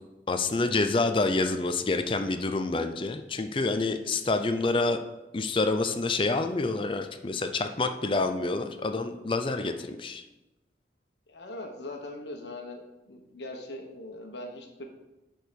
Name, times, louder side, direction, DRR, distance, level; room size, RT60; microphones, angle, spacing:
voice 1, 0.3-5.0 5.3-10.2, left 3 dB, 30° left, 7 dB, 0.5 m, -27 dB
voice 2, 9.5-9.9 11.3-14.9, left 2 dB, 80° left, 3 dB, 1.2 m, -41 dB
10.5 x 4.6 x 5.2 m, 1.0 s
head